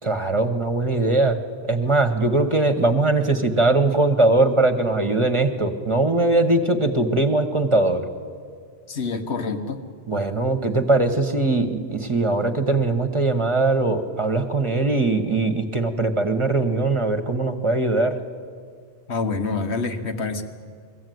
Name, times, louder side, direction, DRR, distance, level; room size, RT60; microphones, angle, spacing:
voice 1, 0.0-1.4 1.6-8.0 10.1-18.1, right 2 dB, 30° right, 7 dB, 1.3 m, -21 dB
voice 2, 8.9-9.8 19.1-20.4, left 4 dB, 80° left, 7 dB, 1.6 m, -26 dB
22.5 x 15.0 x 9.4 m, 2.1 s
omnidirectional pair, 1.1 m